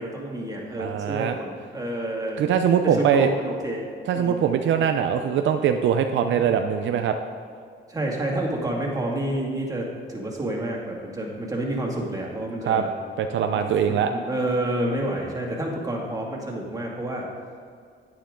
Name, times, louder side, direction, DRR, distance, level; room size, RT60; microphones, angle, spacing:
voice 1, 0.0-2.4 2.8-4.6 6.3-6.4 7.9-12.9 13.9-17.3, right 1 dB, 20° right, -2 dB, 2.3 m, -29 dB
voice 2, 0.8-1.4 2.4-3.3 4.1-7.2 12.7-12.8 13.2-14.1, right 8 dB, 70° right, 6 dB, 0.6 m, -22 dB
10.0 x 9.2 x 3.8 m, 2.2 s
cardioid pair, 90°, 20 cm